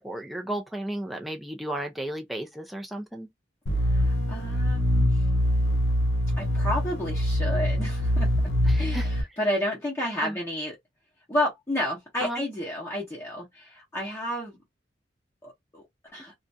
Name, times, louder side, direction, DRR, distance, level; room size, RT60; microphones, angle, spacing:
voice 1, 0.0-3.3 8.7-9.1 10.2-10.4 12.2-12.4, right 1 dB, ahead, 0.5 m, -34 dB
sound 1, 3.7-9.2, equal, 80° left, 0.6 m, -24 dB
voice 2, 3.9-5.2 6.4-8.3 8.7-10.8 11.3-14.6 15.4-15.8 16.1-16.3, equal, 15° left, 0.8 m, -31 dB
2.5 x 2.2 x 2.6 m
head